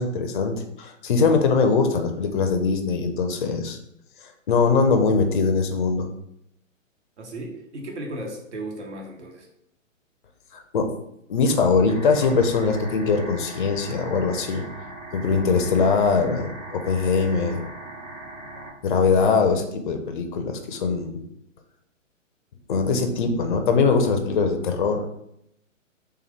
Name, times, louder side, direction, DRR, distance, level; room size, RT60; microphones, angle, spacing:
voice 1, 0.0-3.8 4.5-6.1 10.5-10.9 11.3-14.6 15.1-17.6 18.8-21.2 22.7-25.1, left 4 dB, 40° left, 6 dB, 0.5 m, -22 dB
voice 2, 7.2-9.5, right 1 dB, 60° right, 1 dB, 1.1 m, -35 dB
sound 1, 11.9-18.7, right 2 dB, 85° right, 1.2 m, -40 dB
3.4 x 2.8 x 3.4 m, 0.77 s
figure-of-eight pair, 130°, 39 cm